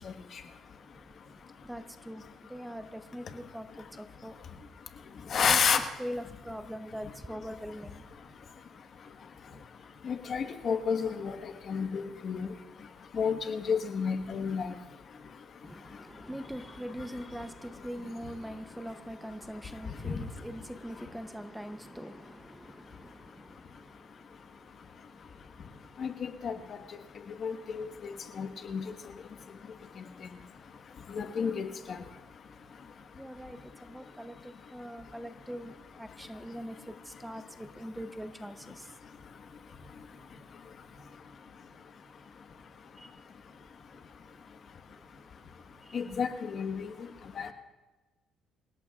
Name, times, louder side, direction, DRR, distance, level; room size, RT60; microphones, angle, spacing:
voice 1, 1.6-4.4 5.3-5.6 6.0-8.0 15.6-23.8 33.1-38.9 43.0-43.1 45.8-46.0, equal, 5° right, 0.7 m, -42 dB
voice 2, 5.3-5.8 10.0-12.5 13.1-14.7 20.0-20.1 26.0-26.5 27.4-28.8 31.1-32.0 45.9-46.9 47.4-47.5, left 6 dB, 50° left, 1.4 m, -31 dB
27.5 x 17.0 x 2.4 m
cardioid pair, 115°, 0 cm